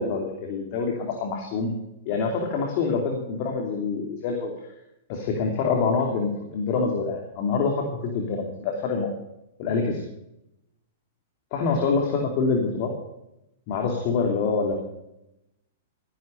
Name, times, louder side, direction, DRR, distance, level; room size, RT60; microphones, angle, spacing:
voice 1, 0.0-1.7 2.1-4.5 5.1-9.1 9.6-10.0 11.5-12.9 13.7-14.8, left 4 dB, 50° left, 2 dB, 2.8 m, -26 dB
14.0 x 11.0 x 5.5 m, 0.87 s
hypercardioid pair, 115°, 0 cm